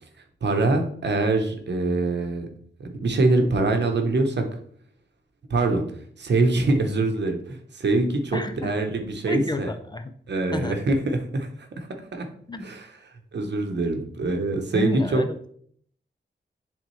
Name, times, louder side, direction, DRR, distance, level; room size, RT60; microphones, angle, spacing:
voice 1, 0.4-2.5 2.8-4.5 5.5-5.8 6.2-9.7 10.3-12.3 12.6-12.9 13.3-15.2, right 2 dB, 60° right, 5 dB, 0.9 m, -24 dB
voice 2, 8.3-8.7 9.3-10.1 10.5-10.8 12.5-12.7 14.7-15.4, left 2 dB, 20° left, 8 dB, 0.4 m, -30 dB
10.5 x 3.6 x 3.2 m, 0.63 s
wide cardioid pair, 155°, 20 cm